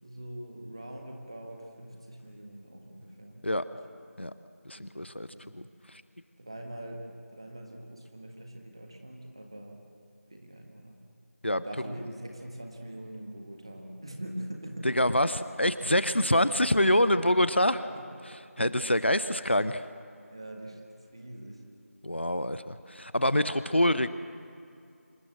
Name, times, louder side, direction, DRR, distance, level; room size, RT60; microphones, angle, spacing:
voice 1, 0.0-3.8 4.7-5.6 6.4-9.8 10.3-11.0 11.5-14.9 16.0-16.4 17.9-18.0 18.6-18.7 20.3-20.8 21.1-21.6, right 1 dB, 20° right, 2 dB, 1.6 m, -43 dB
voice 2, 4.6-5.3 5.5-5.6 5.9-6.0 11.4-11.6 14.8-17.9 18.6-19.9 22.0-24.1, left 1 dB, 50° left, 13 dB, 0.7 m, -25 dB
26.5 x 20.5 x 7.7 m, 2.6 s
figure-of-eight pair, 175°, 8 cm